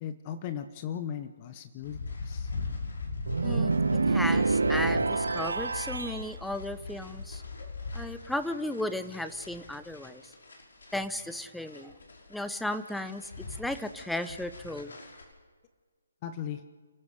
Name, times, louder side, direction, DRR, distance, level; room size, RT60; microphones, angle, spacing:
voice 1, 0.0-2.5 16.2-16.6, left 9 dB, 30° left, 10 dB, 0.9 m, -37 dB
sound 1, 1.8-15.2, left 3 dB, 65° left, 5.9 m, -40 dB
sound 2, 3.3-6.3, right 4 dB, 70° right, 0.6 m, -27 dB
voice 2, 3.4-7.4 7.9-10.3 10.9-11.9 12.3-13.3 13.6-15.0, left 1 dB, ahead, 11 dB, 0.8 m, -35 dB
28.5 x 15.0 x 6.5 m, 1.5 s
figure-of-eight pair, 140°, 0 cm